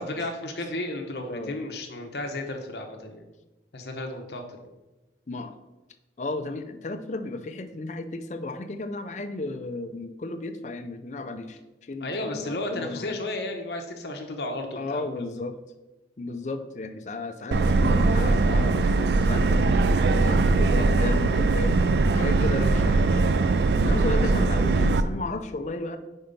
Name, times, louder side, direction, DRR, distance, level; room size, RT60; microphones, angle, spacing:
voice 1, 0.0-3.2 3.7-4.6 12.0-15.3, left 2 dB, 70° left, 3 dB, 0.8 m, -33 dB
voice 2, 6.2-13.2 14.8-15.6 16.2-21.8 22.1-23.3 23.7-26.0, left 2 dB, 40° left, 7 dB, 0.5 m, -33 dB
Subway metro underground, 17.5-25.0, right 3 dB, 70° right, 0.3 m, -21 dB
5.4 x 4.4 x 5.1 m, 1.1 s
head